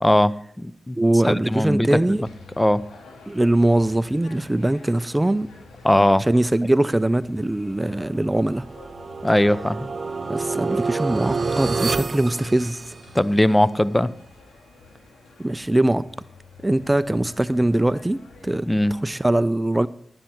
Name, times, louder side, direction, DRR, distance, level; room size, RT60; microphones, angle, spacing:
voice 1, 0.0-1.0 1.2-2.2 2.6-2.8 5.8-6.3 9.2-9.9 13.1-14.1 18.7-19.0, left 1 dB, 15° left, 18 dB, 0.6 m, -19 dB
voice 2, 1.0-2.2 3.3-5.5 6.3-8.6 10.3-12.9 15.4-16.1 16.6-18.7 19.0-19.9, right 1 dB, 20° right, 16 dB, 0.4 m, -21 dB
sound 1, 1.8-19.1, left 3 dB, 85° left, 2.7 m, -49 dB
sound 2, 8.1-13.3, right 4 dB, 55° right, 1.0 m, -28 dB
11.5 x 10.0 x 4.4 m, 0.65 s
supercardioid pair, 40°, 0 cm